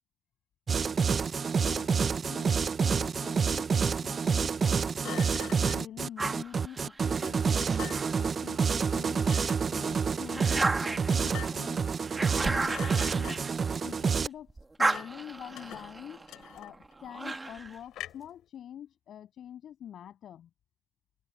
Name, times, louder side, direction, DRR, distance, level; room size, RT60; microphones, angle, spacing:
sound 1, 0.7-14.3, right 6 dB, 40° right, 0.6 m, -28 dB
Thump thud, 1.5-2.3 5.0-5.9 7.6-8.2 9.2-9.7 11.1-11.8 12.1-12.4 12.6-13.7 14.9-15.2 15.5-16.9 17.9-18.4, left 13 dB, 85° left, 5.3 m, -45 dB
voice 1, 1.6-1.9 2.2-5.3 5.6-9.3 9.7-11.8 12.2-13.4 13.8-14.5 14.8-16.2 16.5-20.5, left 10 dB, 70° left, 7.8 m, -46 dB
sound 2, 6.2-8.9 9.4-14.2 14.5-17.8, right 2 dB, 20° right, 2.3 m, -35 dB
cardioid pair, 90°, 0 cm